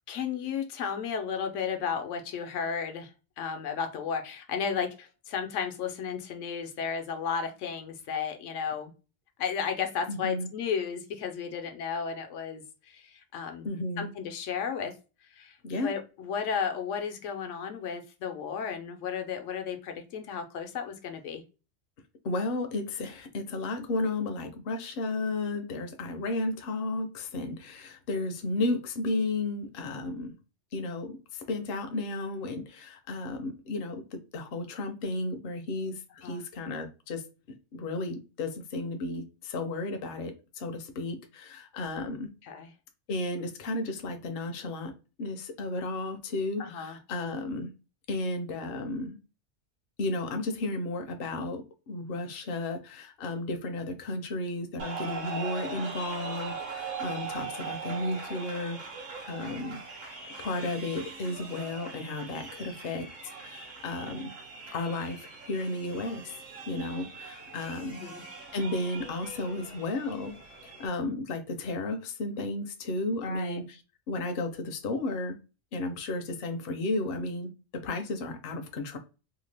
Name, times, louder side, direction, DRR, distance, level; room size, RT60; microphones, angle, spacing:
voice 1, 0.1-8.9 9.4-13.7 14.0-15.0 15.3-15.6 15.8-21.4 36.2-36.4 42.4-42.7 46.6-47.0 67.9-68.2 73.2-73.6, left 6 dB, 85° left, 0.9 m, -34 dB
voice 2, 10.1-10.5 13.6-14.1 15.6-15.9 22.2-30.3 30.7-37.2 37.7-42.3 43.1-44.9 45.2-47.7 48.1-49.2 50.0-58.8 59.3-59.8 60.4-63.1 63.4-64.3 64.7-66.3 66.7-68.0 68.5-70.3 70.6-73.8 74.1-75.4 75.7-79.0, left 2 dB, 60° left, 0.7 m, -33 dB
sound 1, 54.8-70.9, right 4 dB, 60° right, 1.0 m, -41 dB
2.8 x 2.1 x 3.2 m
omnidirectional pair, 1.2 m